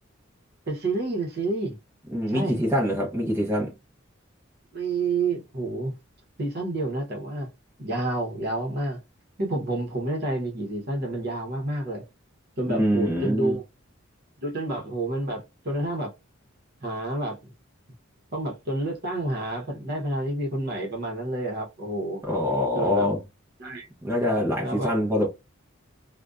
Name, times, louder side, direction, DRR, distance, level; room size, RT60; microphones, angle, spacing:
voice 1, 0.7-1.8 2.3-2.6 4.7-6.0 6.4-7.5 7.8-9.0 9.4-12.0 12.6-13.6 14.4-16.1 16.8-17.5 18.3-22.2 22.7-23.1 23.6-23.9 24.6-24.9, right 2 dB, 50° right, 0.8 m, -29 dB
voice 2, 2.1-3.7 12.7-13.6 22.3-23.2 24.0-25.3, left 1 dB, 15° right, 0.6 m, -24 dB
2.5 x 2.1 x 2.3 m
head